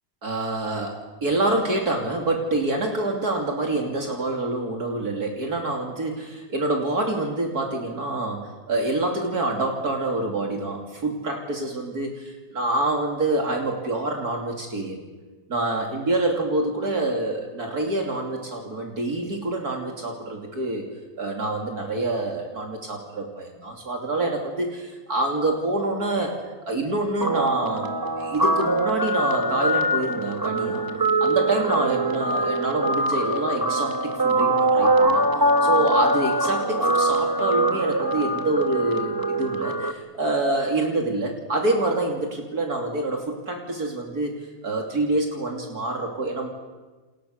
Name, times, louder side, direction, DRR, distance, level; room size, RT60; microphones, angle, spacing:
voice 1, 0.2-15.0 15.5-20.8 21.2-26.3 26.7-27.9 28.2-30.8 31.2-35.2 35.6-44.3 44.6-46.5, right 2 dB, 60° right, 2 dB, 3.4 m, -26 dB
Guitar, 27.2-39.9, right 1 dB, 15° right, 1.5 m, -23 dB
29.5 x 28.5 x 6.6 m, 1.3 s
omnidirectional pair, 1.8 m